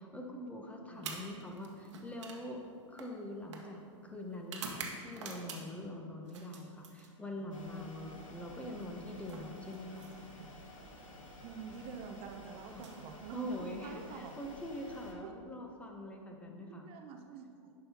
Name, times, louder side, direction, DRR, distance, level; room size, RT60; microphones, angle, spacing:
voice 1, 0.0-2.6 2.9-10.1 12.7-12.9 13.3-16.9, left 1 dB, 10° left, 2 dB, 0.6 m, -44 dB
sound 1, 0.9-5.9 6.3-7.5 8.7-10.5 11.6-11.9 12.7-13.8, right 5 dB, 65° right, 1.0 m, -48 dB
sound 2, 7.5-15.1, left 1 dB, 80° left, 1.2 m, -52 dB
voice 2, 11.4-13.6 13.8-14.3 15.2-15.3 16.7-17.7, right 6 dB, 35° right, 4 dB, 0.5 m, -47 dB
9.6 x 5.5 x 2.8 m, 2.4 s
hypercardioid pair, 120°, 16 cm